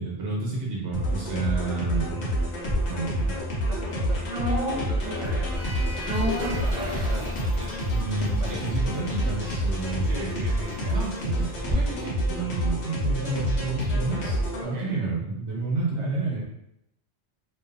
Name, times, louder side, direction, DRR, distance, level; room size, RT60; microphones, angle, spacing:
voice 1, 0.0-2.2 2.9-3.3 7.9-10.6 10.9-16.4, right 3 dB, 75° right, -4 dB, 1.0 m, -30 dB
sound 1, 0.9-14.7, equal, 70° left, 1.0 m, -28 dB
Sliding door, 2.6-11.7, left 1 dB, ahead, 1.0 m, -39 dB
voice 2, 3.3-7.9 8.2-8.8 10.0-11.0 14.6-15.1 16.0-16.4, left 2 dB, 50° right, -4 dB, 0.6 m, -40 dB
sound 2, 4.3-12.6 12.9-13.0, equal, 35° right, 1.1 m, -35 dB
2.7 x 2.3 x 2.5 m, 0.81 s
omnidirectional pair, 1.2 m